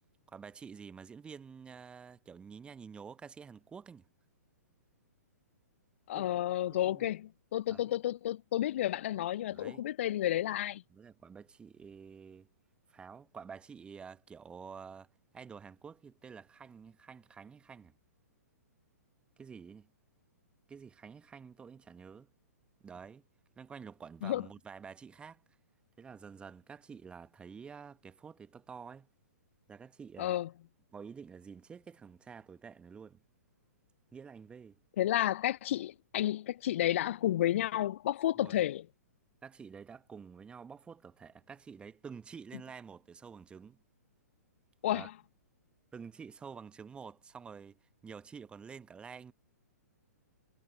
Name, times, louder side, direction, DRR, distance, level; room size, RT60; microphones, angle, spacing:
voice 1, 0.3-4.1 6.1-6.5 6.8-7.1 7.7-8.0 9.5-9.9 10.9-12.5 12.9-17.9 19.4-19.9 20.7-22.3 22.8-23.3 23.6-25.4 26.0-29.1 29.7-30.4 30.9-33.2 34.1-34.8 38.3-38.6 39.4-43.8 44.9-45.1 45.9-49.3, right 6 dB, 10° right, 1.2 m, -49 dB
voice 2, 6.1-10.8 24.2-24.4 30.2-30.5 35.0-38.9 44.8-45.1, left 13 dB, 50° left, 0.4 m, -31 dB
figure-of-eight pair, 115°, 9 cm